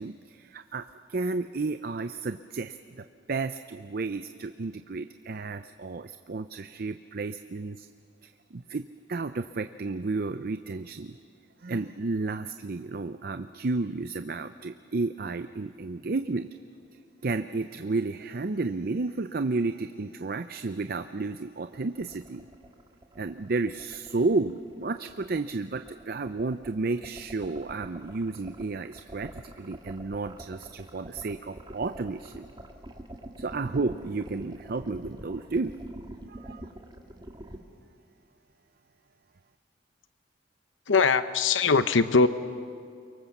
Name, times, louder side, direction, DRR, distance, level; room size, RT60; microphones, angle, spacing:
voice 1, 0.0-7.9 8.2-11.2 11.6-16.5 17.2-22.5 23.2-32.5 33.4-35.8 36.3-36.6, right 3 dB, 50° right, 10 dB, 0.6 m, -32 dB
sound 1, 21.7-37.6, right 1 dB, 25° right, 1.7 m, -45 dB
voice 2, 40.9-42.3, left 4 dB, 90° left, 12 dB, 0.8 m, -21 dB
29.5 x 24.0 x 7.2 m, 2.3 s
head